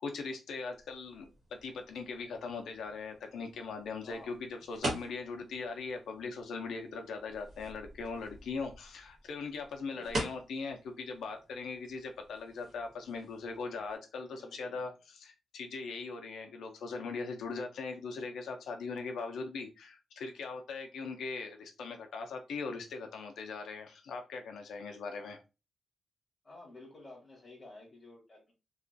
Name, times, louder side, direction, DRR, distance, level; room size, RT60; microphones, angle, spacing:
voice 1, 0.0-25.4, left 4 dB, 85° left, 4 dB, 0.4 m, -40 dB
newspapers small hard, 0.7-14.0, right 1 dB, 50° right, 1.1 m, -45 dB
voice 2, 4.0-4.3 9.9-10.2 14.1-14.8 26.4-28.5, left 2 dB, 20° left, -1 dB, 0.9 m, -52 dB
2.3 x 2.2 x 2.4 m, 0.28 s
wide cardioid pair, 165°, 0 cm